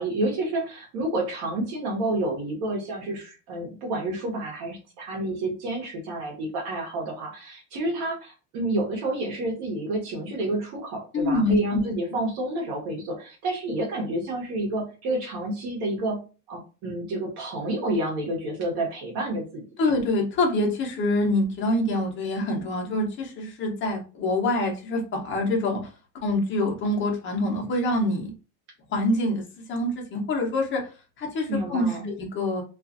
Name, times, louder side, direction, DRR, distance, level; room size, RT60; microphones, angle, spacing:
voice 1, 0.0-16.2 16.5-19.6 31.5-32.1, right 1 dB, 85° right, -1 dB, 1.1 m, -29 dB
voice 2, 11.1-11.8 19.8-25.8 26.2-28.3 28.9-29.4 29.7-30.8 31.2-32.6, left 1 dB, 30° left, 1 dB, 0.7 m, -25 dB
2.5 x 2.3 x 2.5 m, 0.34 s
cardioid pair, 170°, 37 cm